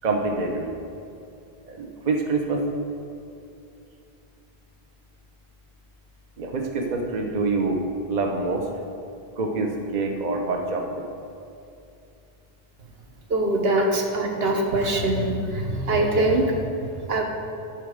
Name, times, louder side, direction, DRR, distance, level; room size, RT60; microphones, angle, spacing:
voice 1, 0.0-0.7 1.6-2.6 6.4-7.8 8.1-8.6 9.4-11.0, right 3 dB, 45° right, 2 dB, 0.9 m, -26 dB
voice 2, 13.3-16.6 17.1-17.2, right 1 dB, 70° right, 2 dB, 1.2 m, -23 dB
11.5 x 4.6 x 6.4 m, 2.7 s
omnidirectional pair, 1.1 m